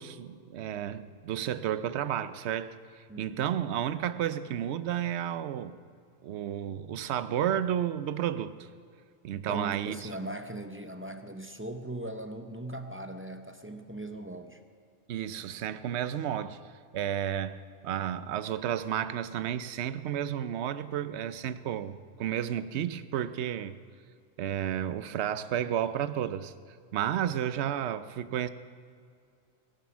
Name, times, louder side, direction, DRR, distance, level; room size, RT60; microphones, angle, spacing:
voice 1, 0.0-5.8 6.2-8.5 9.2-9.9 15.1-16.6 16.9-23.8 24.4-26.5 26.9-28.5, right 10 dB, 65° right, 13 dB, 0.9 m, -32 dB
voice 2, 3.1-3.5 9.3-14.6, right 1 dB, 15° right, 7 dB, 0.4 m, -39 dB
21.5 x 7.6 x 6.1 m, 2.3 s
omnidirectional pair, 1.3 m